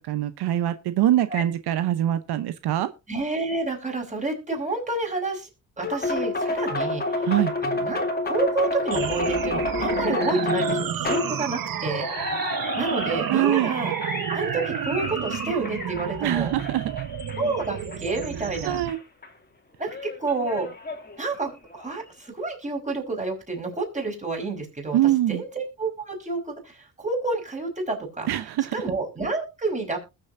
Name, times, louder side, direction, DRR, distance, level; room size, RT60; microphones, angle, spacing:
voice 1, 0.0-2.9 7.2-7.5 13.3-13.7 16.2-17.1 18.6-19.0 24.9-25.4 28.3-28.7, right 13 dB, 85° right, 0.9 m, -23 dB
voice 2, 3.1-5.5 5.8-7.0 7.6-12.1 12.8-13.9 14.3-16.5 17.4-18.8 19.8-20.7 21.2-25.0 25.3-28.3 28.7-30.0, right 3 dB, 20° right, 5.3 m, -29 dB
sound 1, 5.8-19.0 19.2-19.3 19.9-21.9, left 2 dB, 25° left, 2.4 m, -30 dB
sound 2, 8.9-18.9, right 9 dB, 60° right, 1.2 m, -31 dB
20.5 x 6.9 x 2.6 m
cardioid pair, 105°, 38 cm